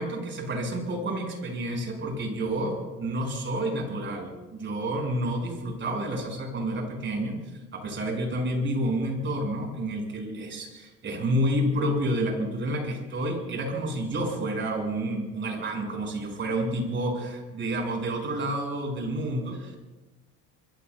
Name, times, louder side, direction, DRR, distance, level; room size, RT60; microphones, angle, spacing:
voice 1, 0.0-7.4 7.7-17.3 17.5-19.8, right 1 dB, 35° right, 2 dB, 6.1 m, -29 dB
25.5 x 22.5 x 2.4 m, 1.1 s
cardioid pair, 135°, 33 cm